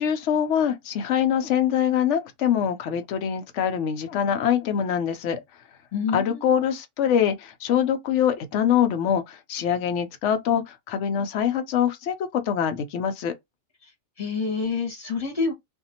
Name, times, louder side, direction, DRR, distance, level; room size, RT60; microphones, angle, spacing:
voice 1, 0.0-5.4 6.1-13.3, left 9 dB, 80° left, 0.9 m, -24 dB
voice 2, 5.9-6.4 14.2-15.5, left 5 dB, 30° left, 1.2 m, -27 dB
2.6 x 2.4 x 2.7 m
omnidirectional pair, 1.2 m